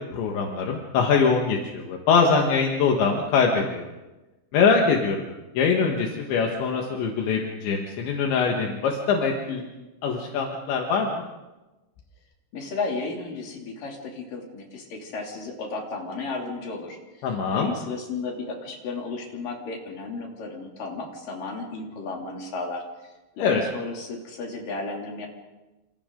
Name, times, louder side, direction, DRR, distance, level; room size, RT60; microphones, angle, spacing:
voice 1, 0.1-3.8 4.5-5.2 5.6-9.6 10.0-11.2 17.2-17.7 23.4-23.6, left 5 dB, 75° left, 0 dB, 4.0 m, -23 dB
voice 2, 12.5-17.0 17.5-25.3, left 3 dB, 50° left, 0 dB, 4.4 m, -34 dB
28.5 x 28.0 x 3.9 m, 1.1 s
omnidirectional pair, 5.3 m